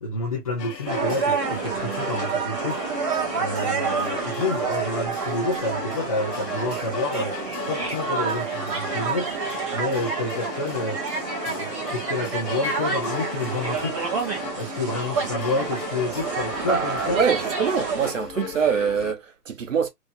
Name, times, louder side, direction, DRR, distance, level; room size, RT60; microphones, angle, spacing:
voice 1, 0.0-2.8 3.4-7.3 7.7-9.3 9.7-11.0 11.5-14.0 14.6-17.2, left 2 dB, 25° left, 0.6 m, -29 dB
sound 1, 0.6-19.1, left 7 dB, 85° left, 0.8 m, -36 dB
sound 2, 0.8-18.1, right 5 dB, 20° right, 1.0 m, -29 dB
voice 2, 16.7-19.9, right 6 dB, 50° right, 0.9 m, -24 dB
3.4 x 3.0 x 2.6 m
figure-of-eight pair, 145°, 48 cm